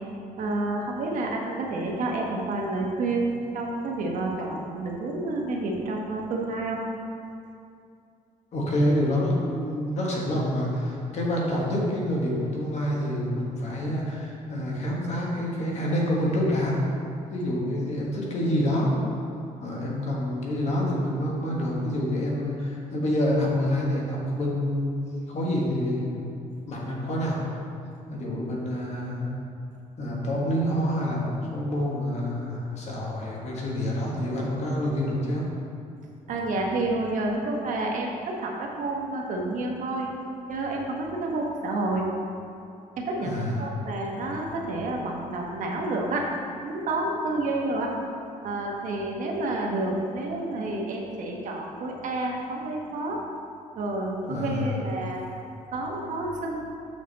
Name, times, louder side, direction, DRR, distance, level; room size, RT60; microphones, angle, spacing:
voice 1, 0.4-6.8 36.3-40.1 40.5-42.1 43.0-46.3 46.6-47.9 48.4-53.2 53.7-55.2 55.7-56.6, right 2 dB, 65° right, 0 dB, 1.1 m, -29 dB
voice 2, 8.5-16.8 17.3-18.9 19.6-26.2 26.7-27.4 28.1-29.3 30.0-35.4 43.2-43.7 54.2-54.8, left 1 dB, 50° left, -3 dB, 1.5 m, -27 dB
6.5 x 6.5 x 4.1 m, 2.5 s
cardioid pair, 140°, 14 cm